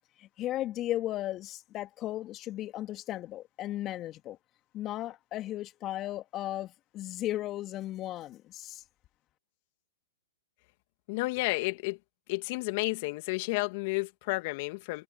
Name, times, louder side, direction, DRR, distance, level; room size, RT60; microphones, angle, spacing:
voice 1, 0.2-4.4 4.7-8.8, left 14 dB, 30° left, 2.6 m, -36 dB
voice 2, 11.1-12.0 12.3-15.0, left 25 dB, 45° left, 2.4 m, -31 dB
hypercardioid pair, 120°, 0 cm